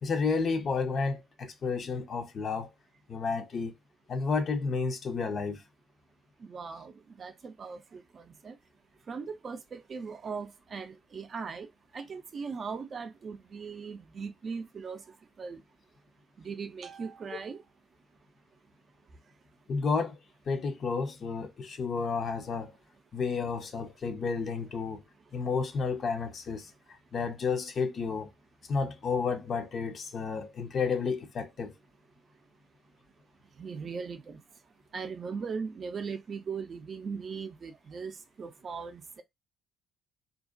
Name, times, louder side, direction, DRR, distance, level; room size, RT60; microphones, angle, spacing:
voice 1, 0.0-2.7 3.1-3.7 4.1-5.6 19.7-20.2 20.5-22.7 23.1-25.0 25.3-26.7 27.1-28.3 28.7-31.7, left 5 dB, 45° left, 0.5 m, -31 dB
voice 2, 6.4-6.9 7.2-8.6 9.1-11.7 11.9-15.0 15.4-15.6 16.4-17.6 33.6-34.4 34.9-39.2, right 5 dB, 45° right, 0.4 m, -39 dB
2.5 x 2.0 x 2.5 m
figure-of-eight pair, 50°, 0 cm